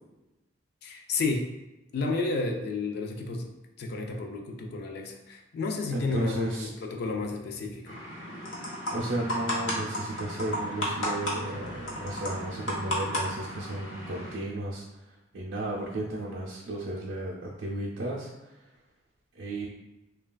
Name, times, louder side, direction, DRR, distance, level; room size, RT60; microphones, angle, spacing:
voice 1, 0.8-1.5 1.9-3.5 3.8-8.0, left 3 dB, 55° left, 3 dB, 0.3 m, -31 dB
voice 2, 5.9-6.7 8.9-14.8 15.3-18.7 19.3-19.7, right 1 dB, 75° right, -4 dB, 0.5 m, -34 dB
sound 1, 7.9-14.3, equal, 85° left, 0.8 m, -34 dB
3.1 x 2.2 x 2.2 m, 1.0 s
head